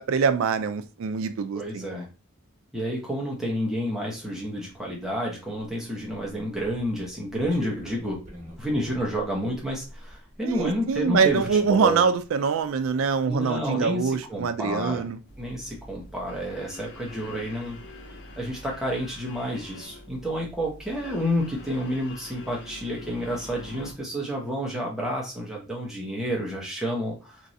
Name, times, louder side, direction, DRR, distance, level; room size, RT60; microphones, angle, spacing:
voice 1, 0.0-1.8 10.4-15.2, right 5 dB, 80° right, 11 dB, 0.4 m, -24 dB
voice 2, 1.5-2.1 2.7-8.2 8.6-12.1 13.2-15.1 15.4-17.8 18.4-27.4, equal, ahead, -3 dB, 0.8 m, -30 dB
sound 1, 4.7-20.2 20.5-21.7, equal, 35° right, 1.1 m, -48 dB
sound 2, 15.3-23.9, left 1 dB, 55° left, 0.5 m, -45 dB
3.1 x 2.6 x 2.6 m, 0.31 s
head